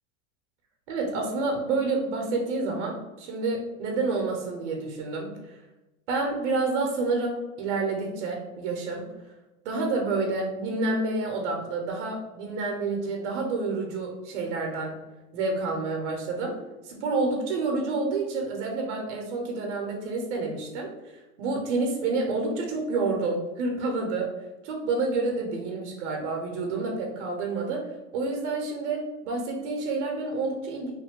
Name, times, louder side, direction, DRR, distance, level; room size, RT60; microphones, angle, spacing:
voice 1, 0.9-5.3 6.1-9.0 9.6-15.0 15.3-16.5 16.8-20.9 21.4-24.3 24.6-27.8 28.1-30.9, right 3 dB, 80° right, 2 dB, 0.9 m, -28 dB
3.2 x 2.2 x 3.6 m, 1.0 s
supercardioid pair, 110°, 35 cm